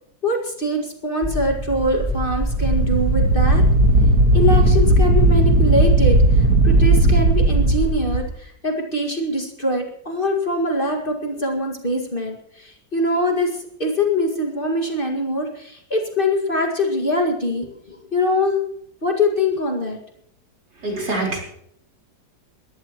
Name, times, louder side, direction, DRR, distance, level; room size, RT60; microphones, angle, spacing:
voice 1, 0.2-3.6 4.3-6.2 6.6-13.5 13.8-18.6 19.0-20.0, left 1 dB, 30° left, 1 dB, 2.2 m, -23 dB
sound 1, 1.2-6.3, left 1 dB, 10° left, 2.2 m, -26 dB
Wind, 1.8-8.2, right 1 dB, 60° right, 2.0 m, -16 dB
voice 2, 20.8-21.4, right 2 dB, 80° right, -1 dB, 5.0 m, -24 dB
21.0 x 15.0 x 3.1 m, 0.69 s
omnidirectional pair, 1.8 m